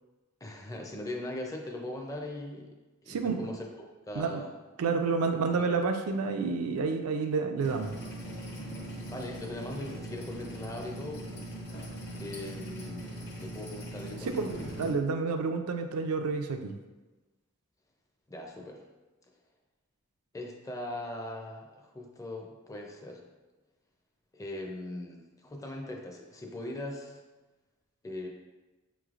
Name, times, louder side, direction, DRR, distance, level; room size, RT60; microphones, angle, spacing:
voice 1, 0.4-2.8 3.0-3.7 4.1-4.5 5.5-5.7 9.1-11.3 12.2-14.5 18.3-18.8 20.3-23.3 24.3-27.2 28.0-28.3, left 1 dB, 15° left, 1 dB, 0.4 m, -40 dB
voice 2, 3.1-3.4 4.2-4.4 4.8-7.9 14.2-16.8, right 4 dB, 80° right, 5 dB, 0.4 m, -29 dB
sound 1, 7.6-14.9, right 1 dB, 50° left, 0.7 m, -41 dB
5.3 x 3.1 x 2.4 m, 1.2 s
head